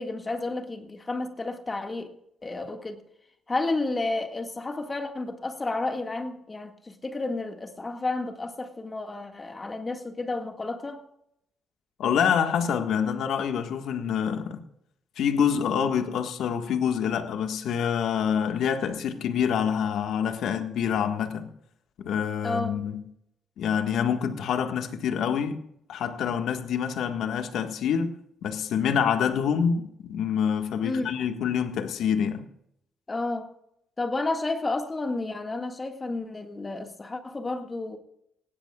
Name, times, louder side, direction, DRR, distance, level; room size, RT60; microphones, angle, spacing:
voice 1, 0.0-2.1 2.4-3.0 3.5-11.0 22.4-22.7 30.8-31.2 33.1-33.5 34.0-38.0, left 2 dB, 25° left, 1.9 m, -31 dB
voice 2, 12.0-14.6 15.2-21.5 22.0-23.0 23.6-25.6 25.9-32.4, left 7 dB, 75° left, 1.6 m, -26 dB
19.5 x 16.5 x 2.4 m
cardioid pair, 90°, 0 cm